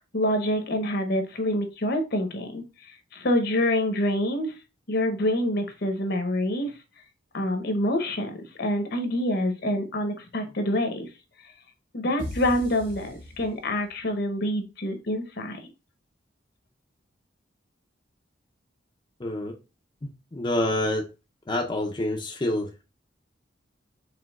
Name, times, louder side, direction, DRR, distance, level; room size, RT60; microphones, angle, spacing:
voice 1, 0.1-4.5 4.9-6.7 7.3-11.1 11.9-15.6, left 1 dB, 60° left, 0.9 m, -26 dB
sound 1, 12.2-14.0, equal, 90° right, 1.6 m, -39 dB
voice 2, 19.2-19.5 20.0-21.1 21.5-22.8, left 1 dB, 25° left, 0.5 m, -27 dB
5.1 x 3.3 x 2.3 m
head